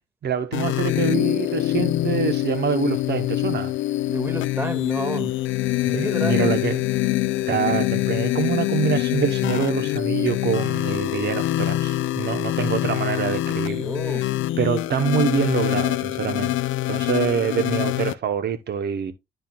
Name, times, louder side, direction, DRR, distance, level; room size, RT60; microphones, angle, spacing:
voice 1, 0.2-3.7 5.8-6.8 7.5-16.5 16.9-19.1, right 7 dB, 60° right, 0.9 m, -25 dB
sound 1, 0.5-18.1, left 15 dB, 75° left, 0.5 m, -24 dB
voice 2, 4.1-5.3 5.9-6.5 13.8-14.3, right 1 dB, 10° right, 1.8 m, -30 dB
12.0 x 4.4 x 2.3 m
cardioid pair, 90°, 20 cm